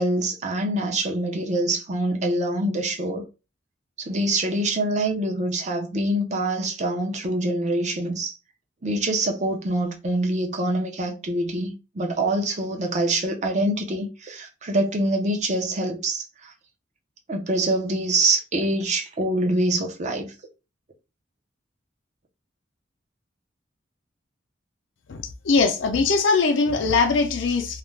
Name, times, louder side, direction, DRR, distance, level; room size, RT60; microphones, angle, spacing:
voice 1, 0.0-3.2 4.0-8.3 8.8-16.5 17.3-20.3, right 1 dB, 40° right, 0.6 m, -25 dB
voice 2, 25.1-27.8, left 4 dB, 70° left, 0.5 m, -21 dB
2.4 x 2.2 x 3.1 m
head